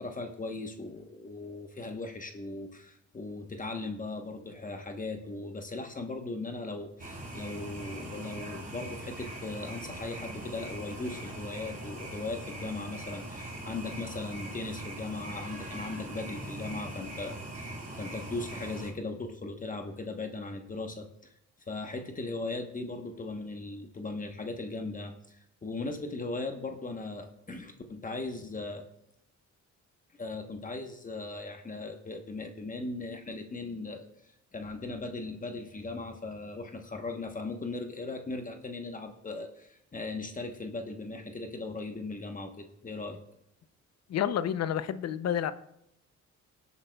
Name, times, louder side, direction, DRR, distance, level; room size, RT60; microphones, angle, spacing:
voice 1, 0.0-21.1 21.7-28.8 30.2-34.0 34.5-43.2, left 3 dB, 25° left, 1.1 m, -38 dB
sound 1, 7.0-18.9, right 1 dB, 30° right, 3.2 m, -41 dB
voice 2, 44.1-45.5, left 9 dB, 60° left, 0.6 m, -29 dB
23.5 x 8.2 x 2.3 m
cardioid pair, 90°, 30 cm